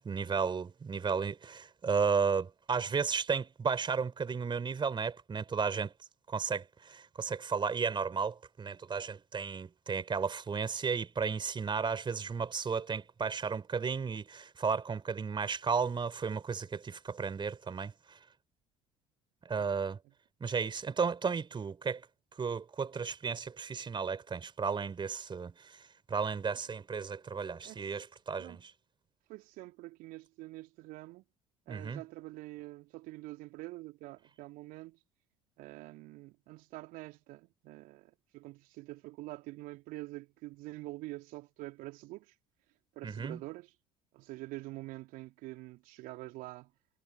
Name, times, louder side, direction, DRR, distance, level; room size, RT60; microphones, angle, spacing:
voice 1, 0.0-5.9 6.3-18.2 19.4-20.0 20.4-22.1 22.3-28.7 31.7-32.0 43.0-43.4, right 5 dB, 30° right, 4.5 m, -34 dB
voice 2, 29.3-31.2 31.7-35.0 35.6-42.3 42.9-43.7 44.1-46.7, right 20 dB, 60° right, 3.3 m, -46 dB
figure-of-eight pair, 60°, 16 cm